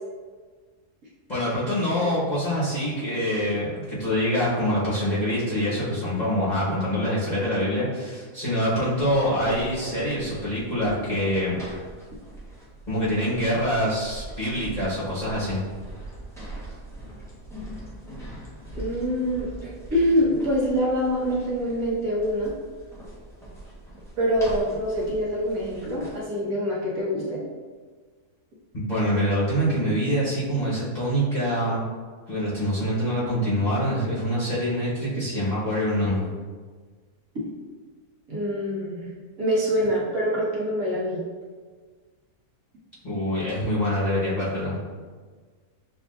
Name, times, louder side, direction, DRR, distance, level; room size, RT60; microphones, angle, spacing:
voice 1, 1.3-11.5 12.9-15.6 28.7-31.8 32.3-36.3 43.0-44.8, equal, 30° left, -10 dB, 1.1 m, -25 dB
sound 1, 8.9-26.2, right 1 dB, 5° left, 0.7 m, -41 dB
voice 2, 18.7-22.5 24.2-27.4 38.3-39.1 39.4-41.2, equal, 65° right, -6 dB, 1.5 m, -25 dB
6.9 x 2.5 x 2.4 m, 1.5 s
omnidirectional pair, 1.6 m